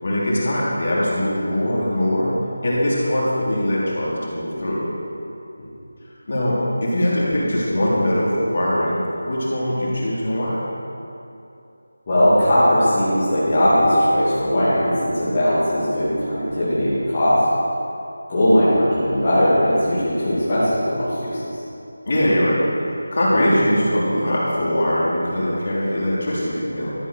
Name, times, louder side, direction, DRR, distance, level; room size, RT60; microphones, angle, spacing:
voice 1, 0.0-2.3 2.6-4.8 6.3-10.6 22.0-26.9, equal, 40° left, -6 dB, 3.2 m, -21 dB
voice 2, 12.1-17.4 18.3-21.5, equal, 20° left, -13 dB, 2.7 m, -19 dB
13.0 x 10.5 x 6.3 m, 2.7 s
figure-of-eight pair, 180°, 0 cm